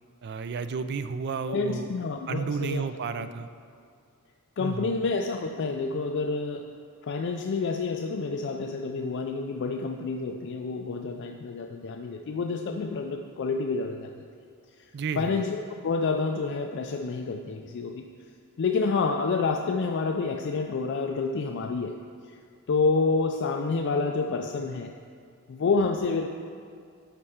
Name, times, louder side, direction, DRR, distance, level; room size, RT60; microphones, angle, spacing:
voice 1, 0.2-1.9 2.3-3.5 4.6-5.0 14.9-15.4, right 5 dB, 50° right, 11 dB, 0.4 m, -32 dB
voice 2, 1.5-2.8 4.6-6.7 7.1-14.1 15.2-18.1 18.6-22.0 22.7-24.9 25.5-26.3, left 4 dB, 55° left, 4 dB, 0.4 m, -28 dB
11.0 x 4.4 x 5.6 m, 2.3 s
head